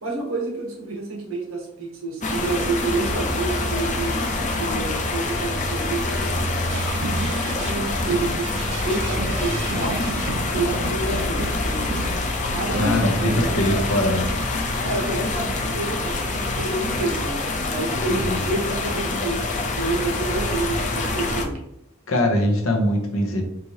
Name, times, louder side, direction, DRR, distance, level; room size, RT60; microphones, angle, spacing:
voice 1, 0.0-4.2 4.6-6.3 7.2-8.5 8.8-10.0 10.5-11.9 12.5-14.0 14.8-21.6, right 3 dB, 85° right, -1 dB, 1.3 m, -29 dB
sound 1, 2.2-21.4, left 2 dB, 35° left, 0.7 m, -26 dB
sound 2, 6.7-7.8 8.1-12.5 12.7-13.9, right 3 dB, 60° right, 0.5 m, -33 dB
voice 2, 12.8-14.3 18.1-18.4 22.1-23.4, left 1 dB, 75° left, 3 dB, 0.9 m, -22 dB
5.2 x 2.8 x 3.0 m, 0.81 s
head